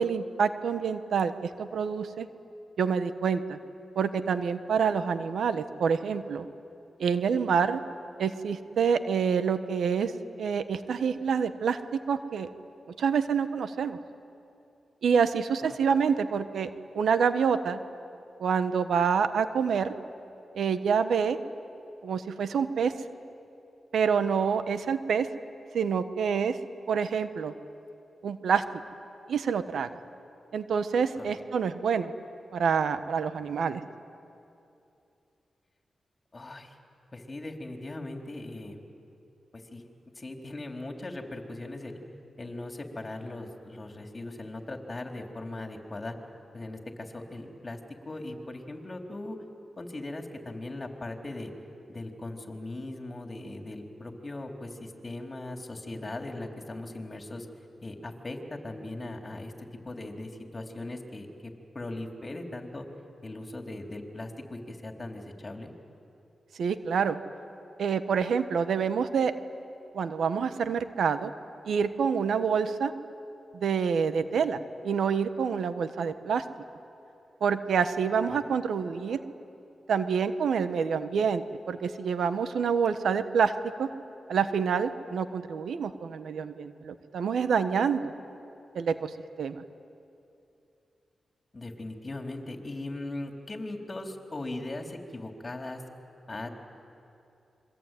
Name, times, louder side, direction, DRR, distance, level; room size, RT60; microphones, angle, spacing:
voice 1, 0.0-2.3 2.8-3.6 3.9-6.5 7.0-7.8 8.2-10.1 10.4-12.5 13.0-14.0 15.0-16.7 16.9-17.8 18.4-19.9 20.5-21.4 22.0-22.9 23.9-25.3 25.7-26.6 26.9-27.5 28.2-28.6 29.3-29.9 30.5-32.1 32.5-33.8 66.6-67.2 67.8-69.3 69.9-71.3 71.6-72.9 73.5-76.4 77.4-79.2 79.9-83.5 83.8-83.9 84.3-88.1 88.7-89.1 89.4-89.6, right 6 dB, 80° right, 10 dB, 1.2 m, -27 dB
voice 2, 36.3-36.8 37.1-38.8 39.5-39.9 40.1-42.0 42.4-46.2 46.5-47.8 48.1-49.4 49.8-51.5 51.9-57.5 57.8-61.3 61.7-62.9 63.2-65.7 78.3-78.4 91.5-95.8 96.3-96.5, left 2 dB, 35° left, 3 dB, 3.8 m, -39 dB
26.5 x 23.5 x 9.3 m, 2.7 s
cardioid pair, 50°, 0 cm